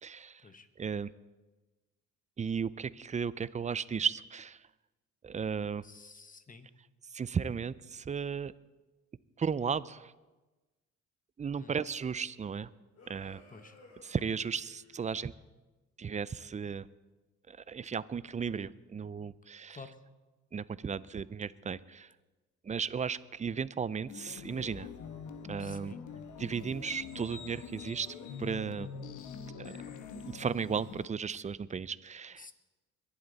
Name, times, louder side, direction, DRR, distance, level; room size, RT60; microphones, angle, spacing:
voice 1, 0.0-0.4 0.8-1.1 2.4-4.6 5.2-5.8 7.1-8.5 9.4-10.1 11.4-12.7 13.1-13.4 14.0-15.3 16.0-16.9 17.5-19.8 20.5-22.1 22.6-24.9 25.5-25.9 26.4-28.9 29.6-29.8 30.1-32.5, right 6 dB, 25° right, 18 dB, 0.5 m, -35 dB
voice 2, 5.8-6.7 11.6-11.8 13.5-13.8 19.7-19.9 25.6-26.0 32.4-32.5, left 4 dB, 25° left, 10 dB, 1.3 m, -51 dB
sound 1, 12.9-15.1, left 2 dB, 55° left, 5.1 m, -58 dB
sound 2, 24.1-31.1, left 6 dB, 75° left, 1.4 m, -44 dB
22.5 x 11.0 x 4.1 m, 1.2 s
cardioid pair, 90°, 30 cm